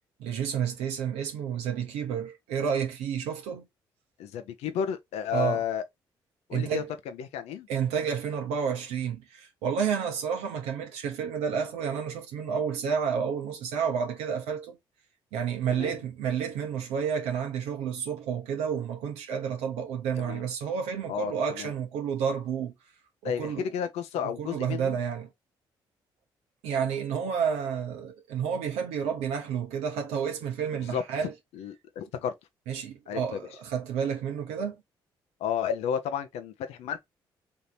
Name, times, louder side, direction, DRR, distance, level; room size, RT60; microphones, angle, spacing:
voice 1, 0.2-3.7 5.3-5.6 6.5-6.9 7.7-14.8 15.3-22.7 23.2-23.7 24.4-25.3 26.6-31.3 32.7-34.8, right 7 dB, 80° right, 0.8 m, -30 dB
voice 2, 4.2-5.8 6.5-7.7 15.7-15.9 20.2-20.5 21.1-21.7 23.2-25.0 30.8-32.3 33.1-33.4 35.4-37.0, left 8 dB, 75° left, 0.6 m, -32 dB
3.6 x 2.8 x 4.0 m
hypercardioid pair, 50°, 11 cm